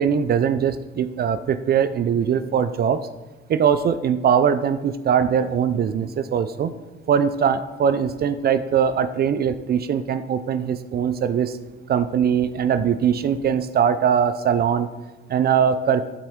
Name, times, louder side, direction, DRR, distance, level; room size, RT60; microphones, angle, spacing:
voice 1, 0.0-3.0 3.5-6.8 7.1-11.6 11.9-14.9 15.3-16.0, right 7 dB, 50° right, 11 dB, 0.5 m, -21 dB
12.0 x 4.3 x 3.6 m, 1.1 s
cardioid pair, 90°, 20 cm